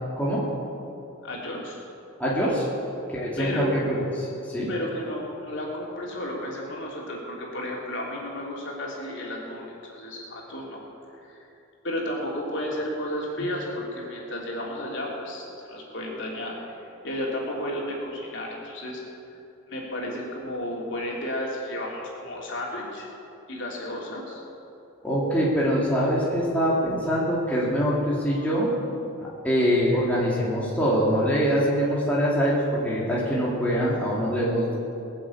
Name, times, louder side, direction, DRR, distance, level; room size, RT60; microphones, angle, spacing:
voice 1, 1.2-1.8 3.4-3.7 4.7-10.8 11.2-11.5 11.8-19.0 19.3-19.4 19.7-23.1 23.5-24.4 29.9-30.0, left 1 dB, 55° left, -3 dB, 3.4 m, -33 dB
voice 2, 2.2-2.7 3.1-4.7 25.0-28.7 29.4-34.7, equal, 5° left, -7 dB, 2.6 m, -24 dB
20.5 x 7.8 x 8.5 m, 2.9 s
head